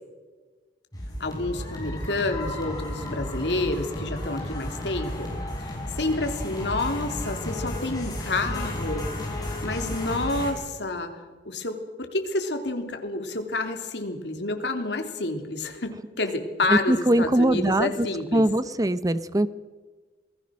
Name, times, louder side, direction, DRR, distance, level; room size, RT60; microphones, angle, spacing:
sound 1, 0.9-10.5, left 1 dB, 20° left, 6.4 m, -33 dB
voice 1, 1.2-5.3 5.6-11.1 11.4-18.5, left 2 dB, 70° left, 5 dB, 3.2 m, -29 dB
voice 2, 16.7-17.9 18.3-19.5, right 1 dB, 20° right, 15 dB, 0.7 m, -21 dB
27.5 x 20.0 x 6.4 m, 1.4 s
head